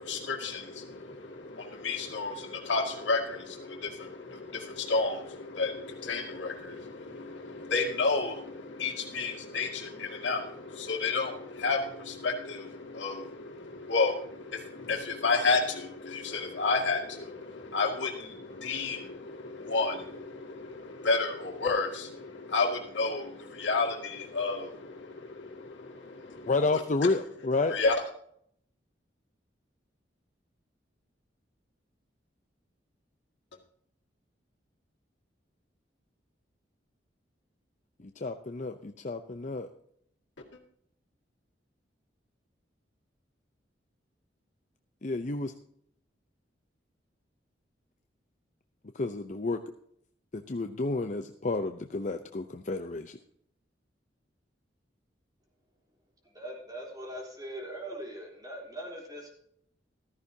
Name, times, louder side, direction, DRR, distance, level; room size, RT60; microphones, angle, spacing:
voice 1, 0.0-26.5 27.7-28.0, left 3 dB, 85° left, 2 dB, 2.2 m, -31 dB
voice 2, 26.5-27.8 38.0-39.7 45.0-45.5 48.9-49.6 50.3-53.2, left 3 dB, 45° left, 6 dB, 0.6 m, -30 dB
voice 3, 56.3-59.3, right 1 dB, 20° right, -1 dB, 3.3 m, -41 dB
14.5 x 13.5 x 2.8 m, 0.67 s
head